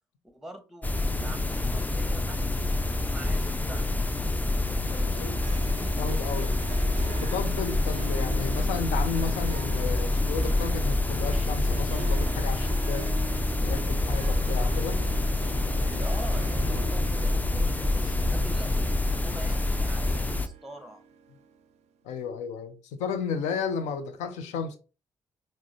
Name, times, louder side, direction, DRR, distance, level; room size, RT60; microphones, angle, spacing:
voice 1, 0.2-4.9 15.8-21.0, right 1 dB, 5° right, 0.8 m, -45 dB
sound 1, 0.8-20.5, left 2 dB, 15° left, 0.4 m, -27 dB
voice 2, 4.9-5.4 6.0-6.5 7.1-13.1 13.6-15.0 22.0-24.8, left 6 dB, 65° left, 0.5 m, -33 dB
Harp, 5.3-21.8, right 7 dB, 60° right, 0.4 m, -44 dB
sound 2, 13.6-18.6, right 1 dB, 30° left, 1.2 m, -43 dB
4.8 x 2.1 x 2.4 m
figure-of-eight pair, 40°, 13 cm